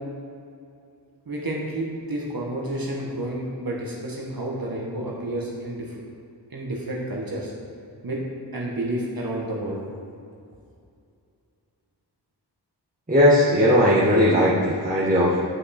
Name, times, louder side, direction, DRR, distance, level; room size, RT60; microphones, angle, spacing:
voice 1, 1.3-6.0 6.5-7.5 8.0-8.2 8.5-9.8, right 1 dB, 55° right, -3 dB, 1.4 m, -30 dB
voice 2, 13.1-15.4, equal, 20° right, -8 dB, 1.4 m, -18 dB
9.3 x 5.4 x 4.3 m, 2.5 s
cardioid pair, 55°, 42 cm